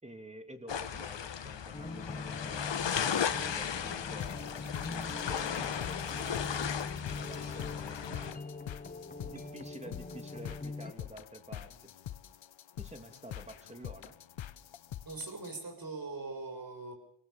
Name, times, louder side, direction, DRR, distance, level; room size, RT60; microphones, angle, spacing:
voice 1, 0.0-6.8 7.1-8.4 9.2-11.9 12.8-14.2, right 1 dB, 15° right, 6 dB, 3.0 m, -50 dB
sound 1, 0.7-8.3, left 8 dB, 75° left, 1.4 m, -36 dB
sound 2, 1.7-10.9, left 3 dB, 20° left, 1.3 m, -43 dB
sound 3, 4.2-15.6, left 11 dB, 90° left, 0.9 m, -46 dB
voice 2, 15.0-16.9, right 3 dB, 50° right, 5 dB, 7.2 m, -41 dB
24.5 x 19.0 x 7.0 m, 0.71 s
cardioid pair, 60°, 45 cm